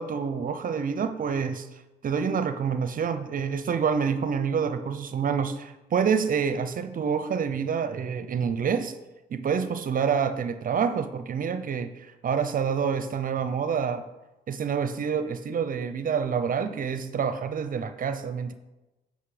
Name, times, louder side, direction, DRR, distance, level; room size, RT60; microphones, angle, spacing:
voice 1, 0.0-1.7 2.0-5.5 5.9-9.0 9.3-14.0 14.5-18.5, right 6 dB, 50° right, 11 dB, 0.6 m, -27 dB
8.2 x 5.2 x 5.0 m, 1.1 s
cardioid pair, 85°, 19 cm